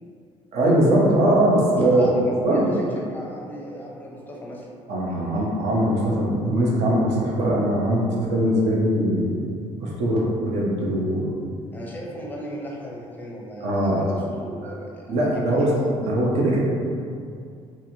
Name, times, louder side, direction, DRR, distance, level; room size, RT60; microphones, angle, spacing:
voice 1, 0.5-2.1 2.4-2.7 4.9-9.3 9.8-11.3 13.6-14.0 14.6-14.7 15.1-15.7 16.0-16.6, right 1 dB, 70° right, -4 dB, 0.6 m, -21 dB
voice 2, 1.8-4.7 5.1-5.5 11.7-16.0, equal, 15° left, -3 dB, 0.5 m, -36 dB
2.9 x 2.5 x 2.7 m, 2.3 s
cardioid pair, 130°, 12 cm